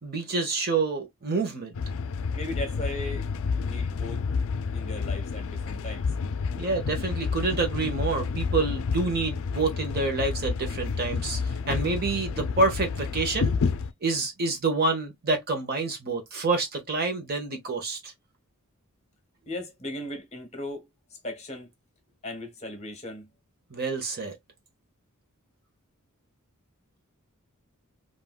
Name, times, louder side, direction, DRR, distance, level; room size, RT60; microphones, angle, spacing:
voice 1, 0.0-1.8 6.6-13.5 14.0-18.1 23.7-24.3, right 3 dB, 45° right, 1.0 m, -28 dB
sound 1, 1.7-13.9, left 5 dB, 65° left, 0.4 m, -30 dB
voice 2, 2.3-3.3 3.6-4.2 4.7-6.1 19.4-20.9 21.2-21.7 22.2-23.3, left 1 dB, 30° left, 1.2 m, -37 dB
3.6 x 2.5 x 2.3 m
head